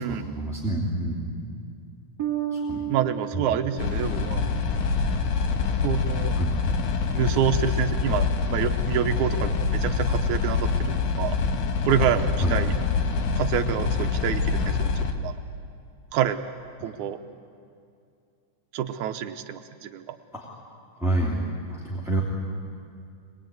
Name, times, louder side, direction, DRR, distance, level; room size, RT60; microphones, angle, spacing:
voice 1, 0.1-1.5 2.5-2.8 3.3-3.4 6.3-6.7 12.4-12.6 16.8-16.9 20.3-20.5 21.0-21.4 21.7-22.2, right 1 dB, ahead, -5 dB, 2.7 m, -28 dB
Bass guitar, 2.2-5.2, right 9 dB, 40° right, 1.6 m, -33 dB
voice 2, 2.9-4.4 5.8-6.4 7.1-11.4 11.8-12.7 13.4-15.4 16.1-16.5 16.8-17.2 18.7-20.2, right 10 dB, 85° right, 7 dB, 2.2 m, -27 dB
sound 1, 3.8-15.1, left 5 dB, 85° left, 2.8 m, -25 dB
23.5 x 21.5 x 9.1 m, 2.4 s
omnidirectional pair, 3.4 m